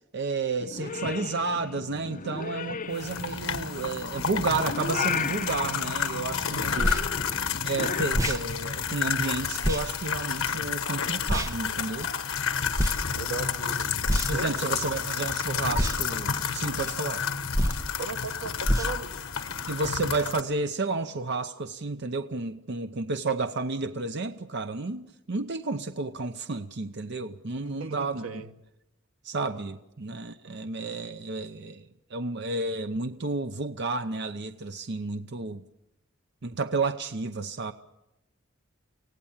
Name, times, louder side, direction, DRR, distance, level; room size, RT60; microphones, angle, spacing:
voice 1, 0.1-6.8 7.6-12.1 14.3-17.3 19.7-28.4 29.2-35.6 36.4-37.7, right 3 dB, 55° right, 0.7 m, -31 dB
Purr / Meow, 0.6-8.0, left 5 dB, 40° left, 0.9 m, -36 dB
sound 1, 2.9-20.4, left 7 dB, 80° left, 1.4 m, -30 dB
voice 2, 6.7-7.1 13.1-13.8 14.3-14.8 18.0-19.1 27.6-28.5 30.3-30.6, right 4 dB, 85° right, 1.4 m, -37 dB
sound 2, 6.8-7.0 8.1-8.4 9.6-9.8 11.3-11.5 12.7-13.0 14.0-14.5 15.7-16.0 17.5-17.8 18.6-18.9, equal, 15° right, 1.1 m, -25 dB
25.0 x 17.0 x 7.3 m
head